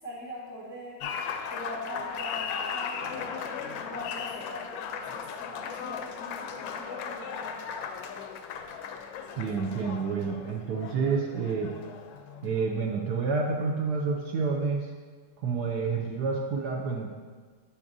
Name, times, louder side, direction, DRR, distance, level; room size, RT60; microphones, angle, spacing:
voice 1, 0.0-1.1 1.5-7.8, equal, 15° left, -5 dB, 0.7 m, -43 dB
Applause, 1.0-12.8, left 6 dB, 80° left, 1.3 m, -37 dB
voice 2, 9.4-11.7 12.4-14.9 15.4-17.1, right 5 dB, 65° right, 0 dB, 1.1 m, -29 dB
8.5 x 6.8 x 2.6 m, 1.5 s
omnidirectional pair, 2.1 m